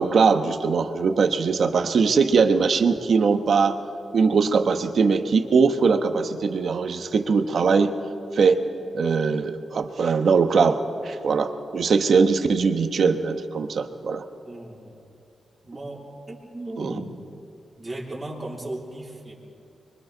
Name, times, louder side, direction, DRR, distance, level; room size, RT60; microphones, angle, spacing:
voice 1, 0.0-3.8 4.1-7.9 8.3-8.6 8.9-14.2, right 5 dB, 55° right, 8 dB, 1.1 m, -21 dB
voice 2, 14.4-14.9 15.6-17.1 17.8-19.3, right 1 dB, 15° right, -5 dB, 3.5 m, -36 dB
30.0 x 23.0 x 4.0 m, 2.6 s
wide cardioid pair, 180°, 0 cm